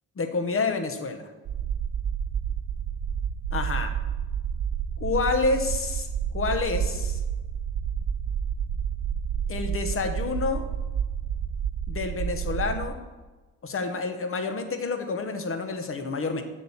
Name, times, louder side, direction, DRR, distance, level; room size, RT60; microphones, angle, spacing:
voice 1, 0.2-1.2 3.5-3.9 5.0-7.2 9.5-10.6 11.9-13.0 13.6-16.4, left 4 dB, 35° left, 6 dB, 1.0 m, -28 dB
sound 1, 1.5-12.9, right 8 dB, 55° right, 0.6 m, -30 dB
8.0 x 6.1 x 7.2 m, 1.2 s
wide cardioid pair, 175°, 36 cm